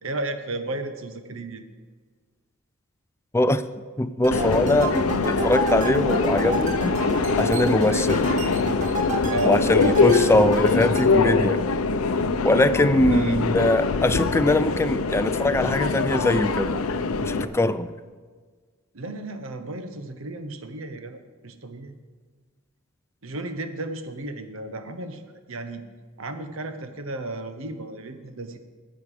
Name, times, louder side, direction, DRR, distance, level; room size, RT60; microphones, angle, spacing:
voice 1, 0.0-1.6 7.9-8.2 9.3-10.3 13.1-13.4 18.9-22.0 23.2-25.8 26.2-28.6, right 2 dB, 65° right, 8 dB, 0.9 m, -33 dB
voice 2, 4.0-4.9 5.3-6.8 7.4-8.2 9.4-11.6 12.4-16.8 17.2-17.9, left 1 dB, 10° left, 12 dB, 0.4 m, -22 dB
sound 1, 4.2-11.1, right 1 dB, 35° right, 0.9 m, -30 dB
Subway metro underground, 4.3-17.4, left 4 dB, 85° left, 0.6 m, -23 dB
12.0 x 8.0 x 5.0 m, 1.5 s
head